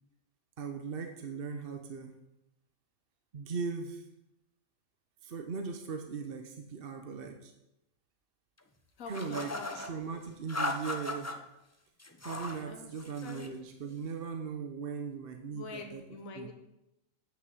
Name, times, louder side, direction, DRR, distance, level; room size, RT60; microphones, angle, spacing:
voice 1, 0.6-2.1 3.3-4.1 5.2-7.5 9.1-11.4 12.2-16.0 16.3-16.5, right 5 dB, 50° right, 4 dB, 0.9 m, -39 dB
voice 2, 9.0-9.8 12.7-13.0 13.2-13.5 15.5-16.5, left 3 dB, 80° left, 3 dB, 1.4 m, -45 dB
sound 1, 9.1-9.9 10.5-11.4 12.0-12.6 13.0-13.5, left 2 dB, 15° left, 0.7 m, -37 dB
8.1 x 6.5 x 7.7 m, 0.91 s
omnidirectional pair, 1.4 m